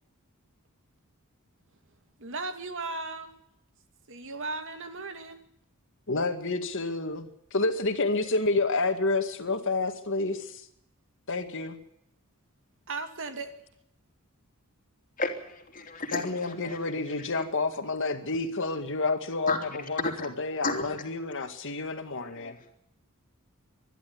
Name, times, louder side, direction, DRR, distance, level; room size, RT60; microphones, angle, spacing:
voice 1, 2.2-3.3 4.1-5.4 12.9-13.5, right 3 dB, 60° right, 7 dB, 2.5 m, -36 dB
voice 2, 6.1-7.2 7.5-10.6 11.3-11.8 16.1-22.6, left 3 dB, 60° left, 7 dB, 2.1 m, -29 dB
voice 3, 15.2-16.8 19.5-19.6 20.0-20.3 20.6-20.9 22.1-22.5, left 3 dB, 40° left, 4 dB, 3.2 m, -33 dB
24.5 x 12.0 x 9.6 m, 0.75 s
head